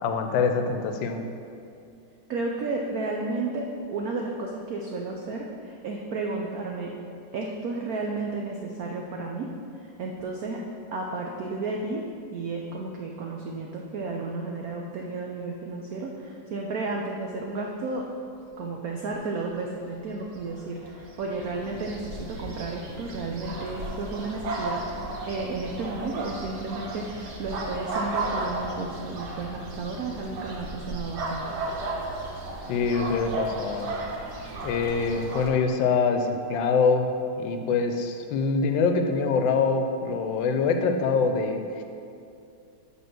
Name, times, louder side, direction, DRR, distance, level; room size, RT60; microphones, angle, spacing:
voice 1, 0.0-1.2 32.7-33.9 34.6-37.1 37.4-41.6, left 4 dB, 75° left, 5 dB, 1.3 m, -24 dB
voice 2, 2.3-7.0 7.3-9.5 9.8-10.6 10.9-18.1 18.6-31.6, right 3 dB, 85° right, 0 dB, 0.8 m, -33 dB
sound 1, 20.1-35.5, right 2 dB, 60° right, 1.4 m, -34 dB
8.4 x 3.9 x 6.0 m, 2.5 s
omnidirectional pair, 2.3 m